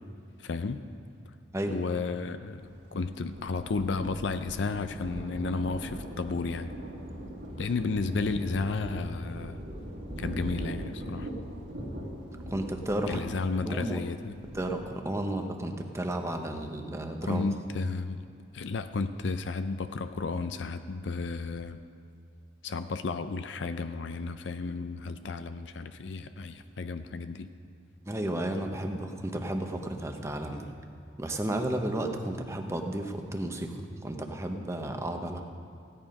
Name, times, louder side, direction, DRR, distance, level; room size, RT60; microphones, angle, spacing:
voice 1, 0.4-0.9 1.7-6.7 7.6-9.6 10.2-11.3 13.1-14.4 17.3-18.2 18.5-21.8 22.6-27.5, left 4 dB, 75° left, 10 dB, 0.5 m, -33 dB
Thunder, 2.6-14.9, equal, 65° right, 2.0 m, -40 dB
voice 2, 12.5-13.3 13.7-14.0 14.5-17.5 28.1-30.7 31.2-35.4, right 1 dB, 15° right, 4 dB, 0.9 m, -33 dB
15.5 x 10.0 x 5.3 m, 2.4 s
head